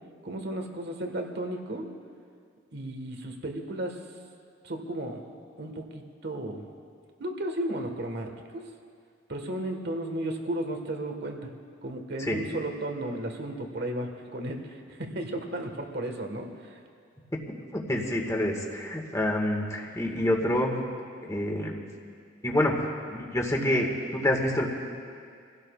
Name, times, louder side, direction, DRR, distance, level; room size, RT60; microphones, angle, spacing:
voice 1, 0.2-1.9 2.7-4.0 4.6-5.2 5.6-6.6 7.2-8.7 9.3-11.5 11.8-16.8, right 1 dB, 60° right, 4 dB, 1.6 m, -34 dB
voice 2, 17.7-20.7 21.2-21.8 22.4-24.7, left 1 dB, 15° left, 0 dB, 1.8 m, -27 dB
27.5 x 16.5 x 2.4 m, 2.3 s
head